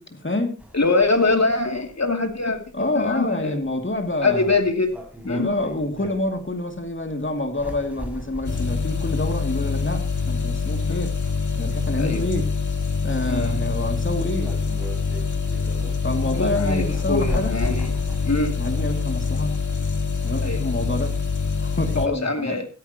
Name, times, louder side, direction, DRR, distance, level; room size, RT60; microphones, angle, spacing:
voice 1, 0.2-0.6 2.7-4.6 5.2-11.1 11.5-12.5 13.0-14.6 16.0-17.6 18.6-19.6 20.2-21.2 21.6-22.6, left 1 dB, 40° left, 2.5 m, -27 dB
sound 1, 0.6-20.4, equal, 5° right, 6.2 m, -39 dB
voice 2, 0.7-3.6 4.2-4.9 5.3-5.5 10.9-11.0 11.9-12.2 13.3-13.5 16.2-16.8 17.1-17.9 18.2-18.5 20.4-20.6 22.0-22.7, left 3 dB, 60° left, 2.6 m, -23 dB
sound 2, 8.4-22.1, left 5 dB, 80° left, 1.9 m, -25 dB
16.0 x 14.0 x 2.9 m
wide cardioid pair, 50°, 30 cm